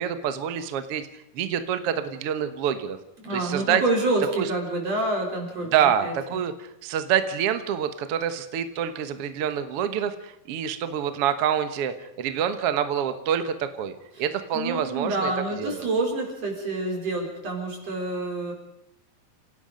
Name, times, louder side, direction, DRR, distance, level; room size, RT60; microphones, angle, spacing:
voice 1, 0.0-3.0 3.3-3.8 4.4-4.5 5.6-15.3 15.6-15.9, right 9 dB, 60° right, 9 dB, 1.5 m, -27 dB
voice 2, 3.2-5.7 6.0-6.1 14.5-18.5, right 2 dB, 45° right, 0 dB, 5.5 m, -27 dB
29.5 x 17.5 x 5.2 m, 0.80 s
omnidirectional pair, 4.3 m